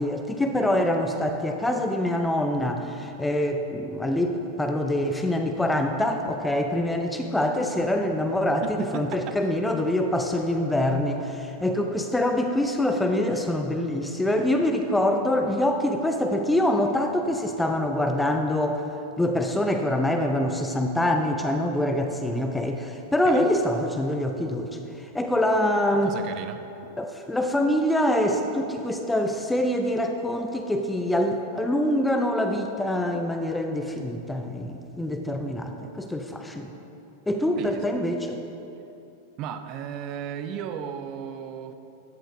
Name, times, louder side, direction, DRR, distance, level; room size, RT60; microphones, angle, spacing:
voice 1, 0.0-18.8 19.2-26.2 27.0-36.7 37.3-38.4, left 1 dB, 5° left, 4 dB, 0.6 m, -25 dB
voice 2, 8.6-9.4 23.2-23.5 26.0-26.6 37.6-38.0 39.4-41.7, right 8 dB, 40° right, 9 dB, 0.7 m, -35 dB
14.5 x 11.5 x 2.8 m, 2.8 s
figure-of-eight pair, 90°, 0 cm